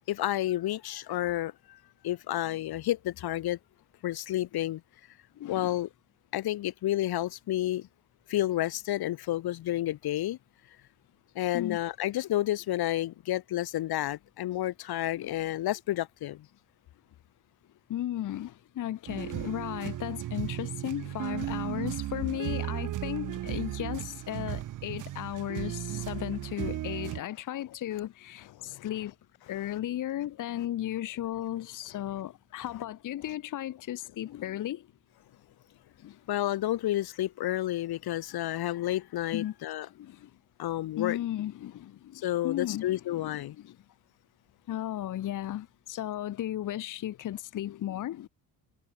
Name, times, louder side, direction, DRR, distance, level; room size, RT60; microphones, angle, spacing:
voice 1, 0.1-1.8 2.0-3.6 4.0-4.8 5.5-5.9 6.3-7.9 8.3-10.4 11.4-16.5 28.6-28.9 36.3-39.9 40.6-41.2 42.1-43.6, left 14 dB, 85° left, 2.3 m, -30 dB
voice 2, 5.4-5.8 11.5-11.8 15.1-15.4 17.9-29.1 29.5-34.9 36.0-36.2 39.3-39.5 39.9-40.3 41.0-43.8 44.7-48.3, left 12 dB, 55° left, 1.1 m, -35 dB
sound 1, 19.1-27.2, right 13 dB, 55° right, 0.8 m, -35 dB
cardioid pair, 175°, 37 cm